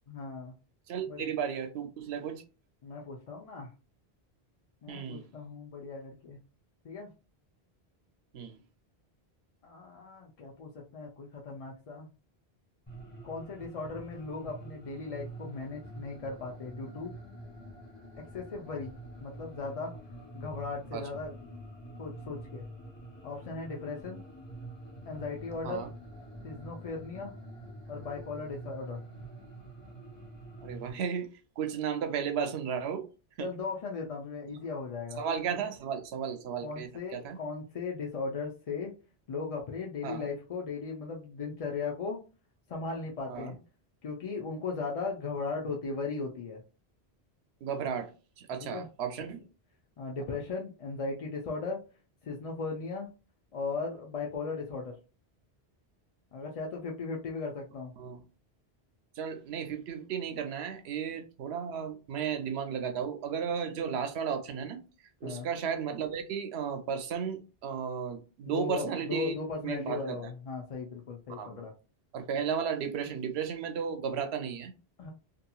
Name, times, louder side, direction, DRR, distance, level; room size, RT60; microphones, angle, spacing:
voice 1, 0.1-0.6 1.1-1.3 2.8-3.7 4.8-6.4 6.8-7.1 9.6-12.1 13.2-17.1 18.3-18.9 19.2-19.9 20.3-21.4 22.0-22.6 23.2-24.2 25.1-25.8 26.4-27.3 27.9-29.0 33.4-35.2 36.6-38.9 39.3-42.2 42.7-43.6 44.0-46.6 48.6-48.9 50.0-51.8 52.2-53.1 53.5-55.0 56.3-57.9 65.2-65.5 68.5-71.7 75.0-75.1, left 4 dB, 50° left, 0.4 m, -37 dB
voice 2, 0.9-2.4 4.9-5.2 8.3-8.6 20.9-21.0 25.6-25.9 30.6-31.3 31.6-33.0 33.4-33.5 34.5-34.6 35.2-37.4 40.0-40.3 43.3-43.5 47.6-48.1 48.4-49.4 58.0-58.2 59.2-64.8 65.2-69.4 69.6-70.2 71.3-71.6 72.1-74.7, right 7 dB, 80° right, 0.8 m, -34 dB
sound 1, 12.9-30.9, right 1 dB, 10° left, 1.3 m, -46 dB
2.8 x 2.5 x 2.3 m
omnidirectional pair, 1.1 m